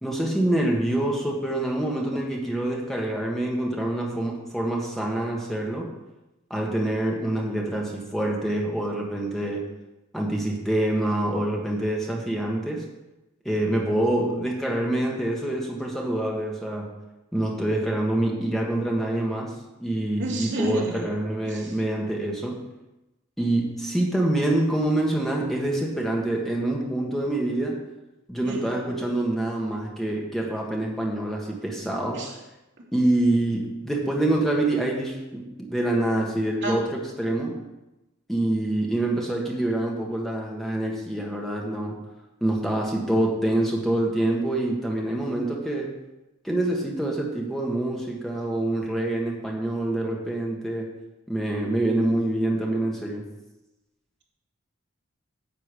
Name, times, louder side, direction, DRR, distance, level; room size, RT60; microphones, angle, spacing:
voice 1, 0.0-5.9 6.5-9.7 10.1-12.8 13.4-16.9 17.3-19.5 19.8-22.6 23.4-27.8 28.3-32.2 32.9-37.5 38.3-42.0 42.4-45.9 46.4-50.9 51.3-53.3, right 1 dB, ahead, -2 dB, 1.6 m, -26 dB
voice 2, 20.2-21.1 21.4-21.7 28.4-28.8 32.1-32.3 36.6-36.8, right 1 dB, 55° right, -3 dB, 3.0 m, -31 dB
10.5 x 5.5 x 8.4 m, 0.98 s
head